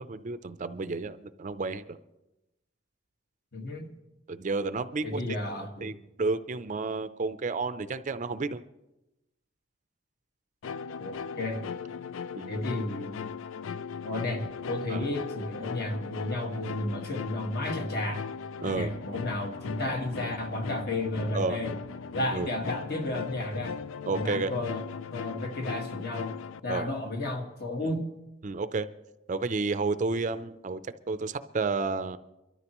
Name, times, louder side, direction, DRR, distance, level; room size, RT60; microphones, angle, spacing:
voice 1, 0.0-2.0 4.3-5.2 5.8-8.6 12.3-12.5 14.9-15.1 18.6-18.9 21.3-21.6 22.3-22.5 24.1-24.5 26.7-26.9 27.8-27.9 28.4-28.9 29.3-32.2, right 3 dB, 40° right, 12 dB, 0.5 m, -31 dB
voice 2, 3.5-3.9 5.0-6.0 11.0-11.7 12.5-13.3 14.0-18.2 18.7-21.7 22.1-23.8 24.1-24.9 25.1-26.4 26.6-28.1, left 1 dB, 55° left, 3 dB, 1.7 m, -33 dB
sound 1, 10.6-26.6, left 6 dB, 85° left, 0.4 m, -38 dB
24.0 x 13.0 x 3.0 m, 0.95 s
head